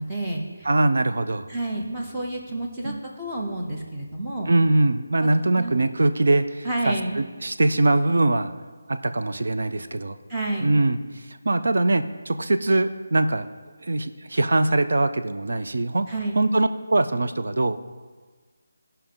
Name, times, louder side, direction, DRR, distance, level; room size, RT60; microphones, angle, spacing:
voice 1, 0.0-0.7 1.5-4.5 5.2-5.3 5.6-5.8 6.6-7.2 10.3-10.8 16.1-16.4, right 1 dB, 10° right, -3 dB, 0.7 m, -30 dB
voice 2, 0.6-1.5 2.8-3.0 4.5-8.5 8.9-10.2 10.6-13.5 13.8-16.1 16.4-17.8, right 2 dB, 60° right, 9 dB, 0.5 m, -22 dB
15.5 x 5.5 x 3.8 m, 1.4 s
figure-of-eight pair, 180°, 0 cm